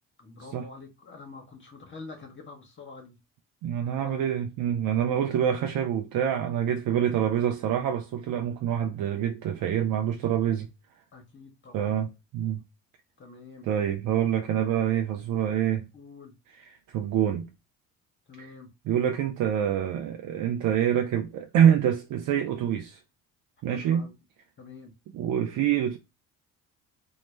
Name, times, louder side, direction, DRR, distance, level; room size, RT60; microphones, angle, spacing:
voice 1, 0.2-3.2 3.9-4.3 11.1-11.9 13.2-13.7 15.9-16.3 18.3-18.7 23.7-24.1 24.6-24.9, left 3 dB, 30° left, 0.7 m, -46 dB
voice 2, 3.6-10.7 11.7-12.6 13.6-15.9 16.6-17.5 18.4-18.5 18.9-23.0 23.6-24.1 25.1-26.0, right 9 dB, 50° right, 0.5 m, -26 dB
2.1 x 2.1 x 3.0 m
hypercardioid pair, 55°, 39 cm